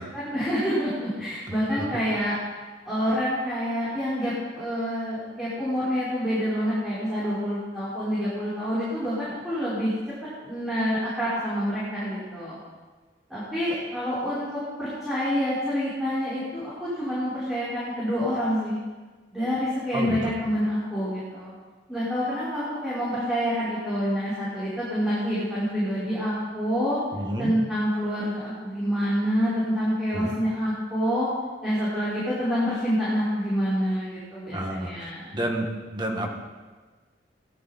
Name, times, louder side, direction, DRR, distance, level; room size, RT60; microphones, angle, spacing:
voice 1, 0.1-2.3 2.8-10.0 10.4-12.6 13.3-14.5 14.8-18.8 19.3-21.5 21.9-27.0 27.4-31.3 31.6-35.4, equal, ahead, -13 dB, 5.5 m, -27 dB
voice 2, 19.9-20.3 27.1-27.5 30.1-30.3 34.5-36.3, right 1 dB, 25° right, 1 dB, 1.8 m, -30 dB
17.5 x 13.0 x 4.4 m, 1.3 s
head